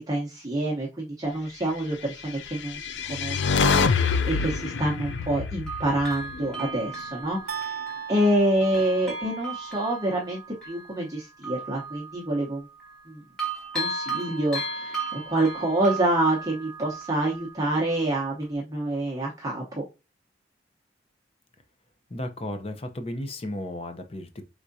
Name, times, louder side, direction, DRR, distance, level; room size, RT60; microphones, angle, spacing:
voice 1, 0.0-7.8 8.1-12.7 13.1-13.2 13.7-19.8, right 1 dB, 20° right, 0.9 m, -27 dB
Bell, 2.4-2.5 3.4-5.4 5.7-13.1 13.4-18.0 18.4-18.5, right 3 dB, 5° left, 1.4 m, -37 dB
sound 1, 2.5-6.8, left 5 dB, 80° left, 0.4 m, -26 dB
sound 2, 7.5-9.6, right 7 dB, 55° right, 0.4 m, -37 dB
voice 2, 22.1-24.4, left 1 dB, 30° left, 0.6 m, -34 dB
4.7 x 3.6 x 2.7 m
head